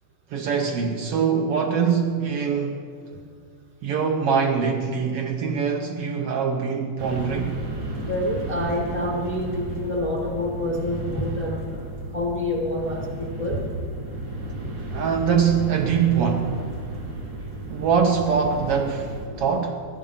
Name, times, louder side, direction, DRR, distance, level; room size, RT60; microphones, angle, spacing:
voice 1, 0.3-2.9 3.8-7.7 14.9-16.6 17.7-19.9, right 6 dB, 85° right, 1.3 m, -23 dB
sound 1, 7.0-19.3, right 2 dB, 65° right, 3.5 m, -33 dB
voice 2, 8.0-11.8 12.1-13.6 19.3-19.4, left 1 dB, 40° left, 0.4 m, -27 dB
15.0 x 10.5 x 5.7 m
omnidirectional pair, 3.7 m